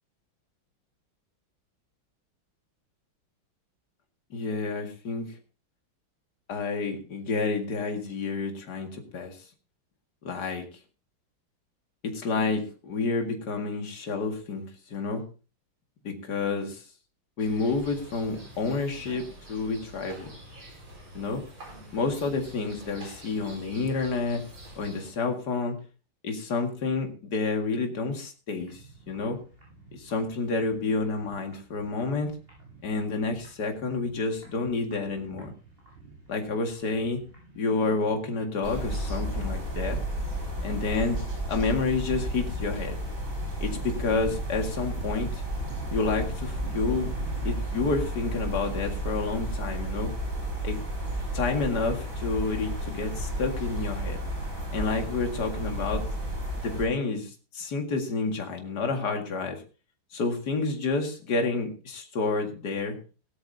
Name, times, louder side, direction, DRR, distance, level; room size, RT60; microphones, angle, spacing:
voice 1, 4.3-5.4 6.5-9.4 10.2-10.7 12.0-15.2 16.0-16.8 17.4-20.3 21.1-21.4 21.9-24.4 24.8-25.8 26.2-29.4 29.9-32.3 32.8-35.5 36.3-37.2 37.6-40.0 40.6-41.2 41.5-43.0 43.6-45.4 45.9-47.1 47.4-50.1 50.6-50.8 51.3-54.2 54.7-56.0 56.6-59.6 60.1-63.0, left 4 dB, 50° left, 3 dB, 2.5 m, -29 dB
sound 1, 17.4-25.1, right 1 dB, 90° right, 5.9 m, -47 dB
sound 2, 28.6-47.6, right 3 dB, 25° right, 8.0 m, -48 dB
sound 3, 38.6-56.8, right 1 dB, 55° right, 6.4 m, -32 dB
18.0 x 13.0 x 2.7 m, 0.34 s
omnidirectional pair, 2.2 m